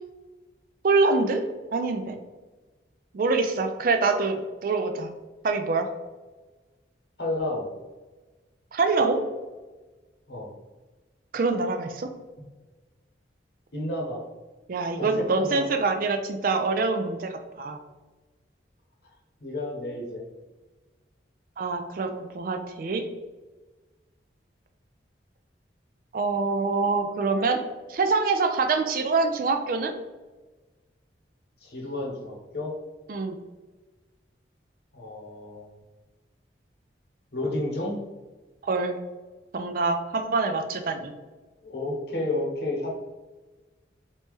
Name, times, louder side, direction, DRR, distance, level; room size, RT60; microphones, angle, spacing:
voice 1, 0.8-1.4 1.7-2.2 3.1-5.1 5.4-5.9 8.7-9.2 11.3-12.1 14.7-17.8 21.6-23.0 26.1-27.6 27.9-30.0 33.1-33.4 38.6-39.0 39.5-41.1, right 3 dB, 50° right, 6 dB, 0.4 m, -25 dB
voice 2, 7.2-7.7 10.3-10.5 12.4-12.5 13.7-14.2 15.0-15.7 19.4-20.2 31.6-32.7 34.9-35.7 37.3-38.0 41.6-42.9, left 1 dB, 60° left, -1 dB, 0.9 m, -31 dB
3.1 x 2.7 x 3.5 m, 1.2 s
head